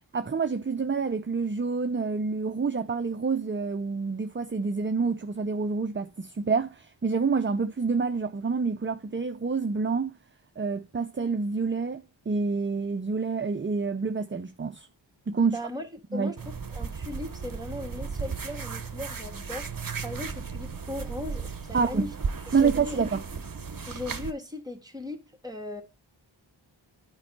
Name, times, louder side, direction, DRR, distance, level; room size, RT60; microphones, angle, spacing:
voice 1, 0.1-10.1 10.6-14.9 15.3-15.6 16.1-16.3 21.7-22.1 22.5-23.2, right 4 dB, 25° right, 0.5 m, -27 dB
voice 2, 15.5-19.7 20.0-22.1 22.5-23.0 23.9-25.8, left 2 dB, 10° right, 1.6 m, -38 dB
sound 1, 16.4-24.3, right 5 dB, 45° right, 1.0 m, -35 dB
9.7 x 5.3 x 4.4 m
wide cardioid pair, 55°, 47 cm